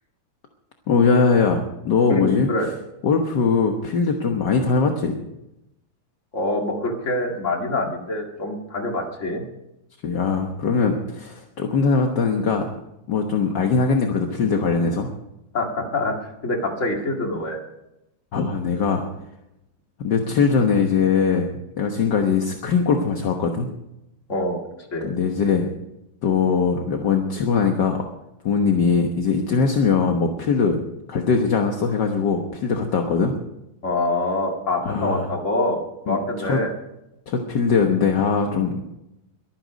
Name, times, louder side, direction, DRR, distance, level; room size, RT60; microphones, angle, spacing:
voice 1, 0.9-2.5 3.0-5.2 10.0-12.7 13.1-15.1 18.3-19.0 20.0-23.7 25.0-25.7 26.2-28.0 28.4-30.8 31.1-33.4 34.8-35.3 36.1-36.6 37.3-38.8, left 5 dB, 60° left, 3 dB, 1.8 m, -21 dB
voice 2, 2.1-2.7 6.3-9.5 15.5-16.1 16.4-17.6 24.3-24.6 24.9-25.1 33.8-36.7, left 2 dB, 40° left, 2 dB, 2.5 m, -25 dB
22.5 x 9.4 x 5.1 m, 0.89 s
omnidirectional pair, 2.2 m